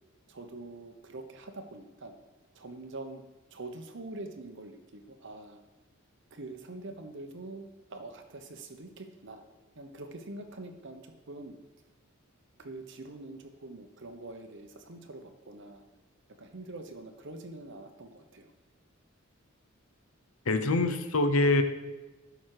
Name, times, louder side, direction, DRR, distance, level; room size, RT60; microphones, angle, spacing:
voice 1, 0.3-2.1 2.5-3.2 3.5-5.6 6.3-7.6 7.9-9.4 9.8-11.6 12.6-15.8 16.4-18.5, right 2 dB, 60° right, 6 dB, 1.0 m, -44 dB
voice 2, 20.5-21.6, left 2 dB, 80° left, 9 dB, 0.8 m, -24 dB
11.5 x 6.1 x 4.8 m, 1.2 s
head